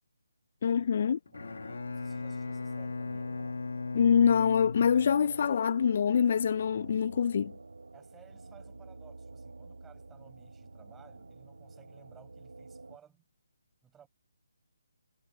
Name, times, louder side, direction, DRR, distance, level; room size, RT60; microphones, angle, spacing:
voice 1, 0.6-1.2 3.9-7.5, left 7 dB, 50° left, 0.4 m, -25 dB
Bowed string instrument, 1.3-5.6, left 4 dB, 70° left, 1.4 m, -38 dB
voice 2, 1.3-3.3 7.9-13.2 13.8-14.1, right 8 dB, 10° right, 7.4 m, -60 dB
sound 1, 1.3-13.0, right 3 dB, 85° right, 3.2 m, -49 dB
figure-of-eight pair, 155°, 0 cm